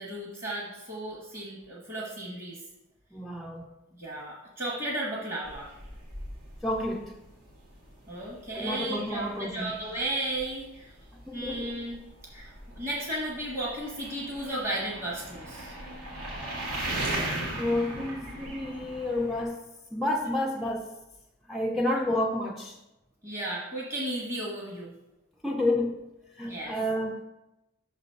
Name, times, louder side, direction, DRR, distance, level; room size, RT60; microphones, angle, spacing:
voice 1, 0.0-2.6 4.0-5.7 8.1-10.9 11.3-12.0 12.3-15.7 21.9-22.0 23.2-24.9 26.4-26.7, right 1 dB, 35° right, -4 dB, 1.2 m, -34 dB
voice 2, 3.1-3.7 6.6-7.2 8.5-9.7 11.1-11.8 17.6-19.6 19.9-20.9 21.5-22.8 25.4-26.1 26.4-27.2, left 1 dB, ahead, -1 dB, 0.3 m, -30 dB
sound 1, 5.4-19.4, right 1 dB, 85° right, 2.1 m, -39 dB
5.8 x 4.0 x 5.5 m, 0.93 s
head